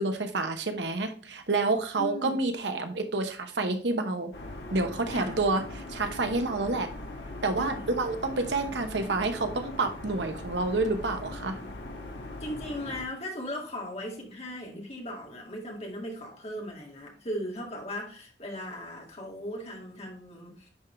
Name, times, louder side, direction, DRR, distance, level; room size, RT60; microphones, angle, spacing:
voice 1, 0.0-4.3 4.7-6.9 7.4-11.6, right 3 dB, 85° right, 1.0 m, -29 dB
voice 2, 2.0-2.4 5.1-5.4 7.6-7.9 12.4-20.7, left 1 dB, 35° left, 2.0 m, -38 dB
sound 1, 4.3-13.1, left 2 dB, 70° left, 1.7 m, -40 dB
10.5 x 3.8 x 3.2 m
head